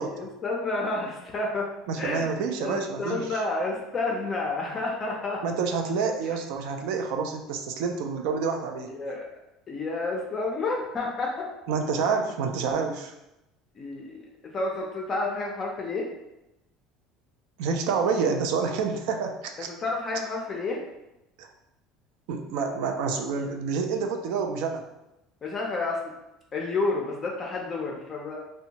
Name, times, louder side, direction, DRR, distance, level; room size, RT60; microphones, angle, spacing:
voice 1, 0.0-1.7 2.0-2.3 2.6-5.4 6.3-6.4 8.9-9.3 9.7-11.3 13.8-14.2 14.5-16.1 19.6-20.8 25.4-26.0 26.5-28.4, left 3 dB, 25° left, -1 dB, 0.4 m, -30 dB
voice 2, 1.9-3.4 5.4-8.9 11.7-13.1 17.6-19.7 21.4-21.5 22.3-24.8, right 5 dB, 70° right, 4 dB, 0.4 m, -28 dB
2.6 x 2.1 x 2.8 m, 0.91 s
cardioid pair, 150°, 0 cm